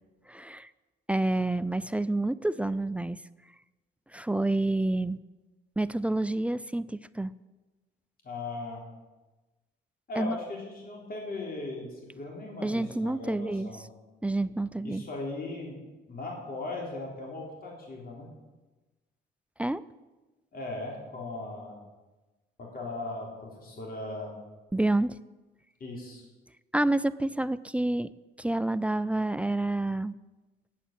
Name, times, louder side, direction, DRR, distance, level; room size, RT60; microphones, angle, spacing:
voice 1, 0.3-0.7 1.1-3.2 4.1-5.2 5.8-7.3 10.2-10.4 12.6-13.7 14.2-15.0 19.6-19.8 24.7-25.2 26.7-28.1 28.4-30.1, right 2 dB, 5° right, 15 dB, 0.3 m, -28 dB
voice 2, 8.2-8.8 10.1-13.8 14.8-15.8 16.1-18.3 20.5-21.8 22.6-24.3 25.8-26.2, left 2 dB, 50° left, -2 dB, 3.6 m, -38 dB
8.5 x 8.0 x 8.7 m, 1.2 s
cardioid pair, 90°, 20 cm